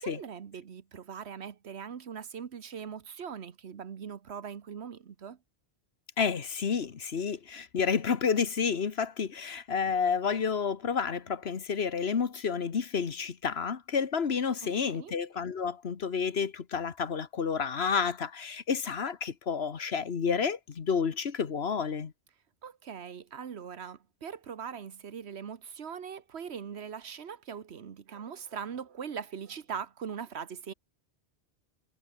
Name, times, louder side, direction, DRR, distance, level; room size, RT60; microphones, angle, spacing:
voice 1, 0.0-5.4 14.6-15.1 22.6-30.7, right 7 dB, 75° right, 1.4 m, -41 dB
voice 2, 6.2-22.1, left 6 dB, 70° left, 1.5 m, -30 dB
omnidirectional pair, 1.1 m